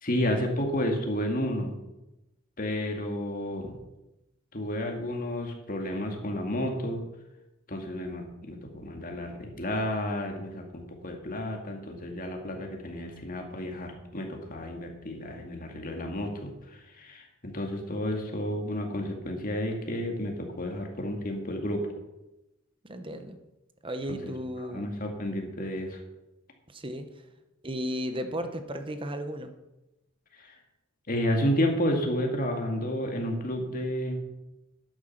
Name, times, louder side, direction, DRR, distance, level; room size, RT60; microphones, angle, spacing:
voice 1, 0.0-1.8 2.6-3.7 4.5-7.0 7.7-21.9 24.1-26.0 30.4-30.6 31.1-34.3, equal, 40° left, 2 dB, 2.2 m, -31 dB
voice 2, 22.9-23.4 23.8-24.9 26.7-27.1 27.6-29.5, equal, 25° right, 8 dB, 1.1 m, -34 dB
11.5 x 9.3 x 6.1 m, 0.98 s
head